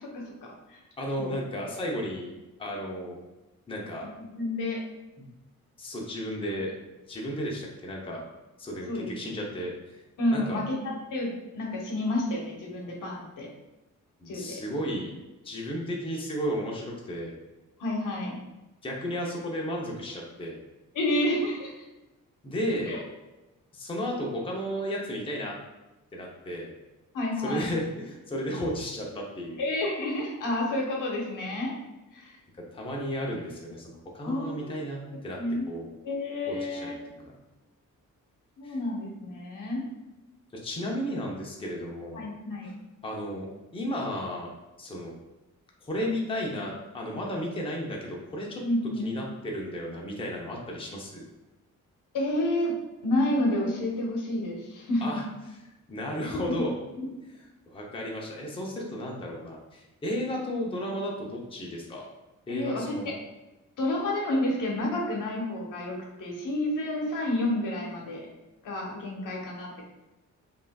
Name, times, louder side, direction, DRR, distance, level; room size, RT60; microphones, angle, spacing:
voice 1, 0.0-0.8 1.2-1.3 4.3-4.8 8.9-9.1 10.2-13.5 14.3-14.6 17.8-18.4 20.9-21.7 22.9-23.0 27.1-27.7 29.6-31.7 32.1-32.4 34.2-34.7 35.4-35.7 36.0-37.0 38.6-39.9 42.1-42.7 48.6-49.0 52.1-52.8 53.0-55.1 56.3-56.6 57.0-57.1 62.5-63.1 63.8-68.3 68.6-69.8, left 1 dB, 80° left, -1 dB, 1.0 m, -30 dB
voice 2, 1.0-2.3 2.6-3.2 3.7-4.1 5.2-5.3 5.8-6.7 7.1-8.2 8.6-10.0 10.3-10.6 14.2-15.1 15.4-17.4 18.8-20.6 22.4-23.0 23.7-25.5 26.1-26.7 27.4-29.6 32.7-35.4 35.7-35.9 36.5-36.9 38.6-38.8 40.6-42.3 43.0-43.5 43.7-44.5 44.8-45.1 45.8-48.6 49.0-51.2 55.0-55.2 55.9-56.7 57.7-62.1 62.5-63.1, equal, 15° left, -2 dB, 0.6 m, -33 dB
5.4 x 2.6 x 2.3 m, 1.0 s
wide cardioid pair, 145°, 32 cm